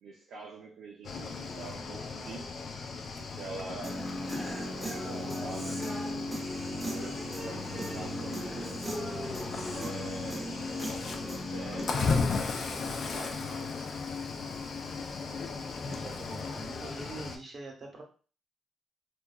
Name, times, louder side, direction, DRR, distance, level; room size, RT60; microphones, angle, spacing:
voice 1, 0.0-2.5 3.2-4.0 4.8-5.9 6.8-8.9 9.7-10.6 11.1-12.2 12.5-13.8, right 3 dB, 75° right, -2 dB, 0.5 m, -45 dB
Cricket / Waves surf, 1.0-17.4, left 4 dB, 55° left, 0.4 m, -36 dB
Human voice / Guitar, 3.8-11.8, equal, 5° right, 0.7 m, -37 dB
voice 2, 15.9-18.0, right 2 dB, 45° right, 1 dB, 0.9 m, -44 dB
2.8 x 2.3 x 2.3 m, 0.38 s
cardioid pair, 100°, 0 cm